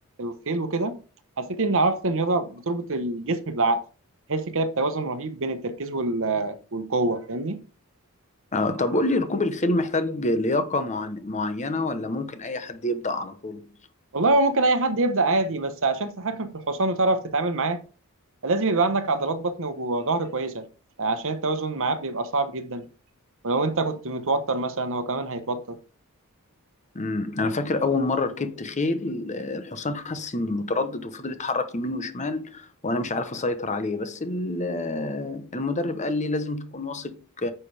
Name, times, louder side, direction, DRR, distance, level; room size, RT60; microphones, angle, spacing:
voice 1, 0.2-1.0 1.4-3.8 4.3-7.6 14.1-17.8 18.4-20.6 21.0-22.9 23.4-25.8, right 2 dB, 60° right, 1.1 m, -25 dB
voice 2, 8.5-13.7 26.9-37.5, left 2 dB, 30° left, 1.0 m, -27 dB
9.0 x 7.0 x 3.4 m
head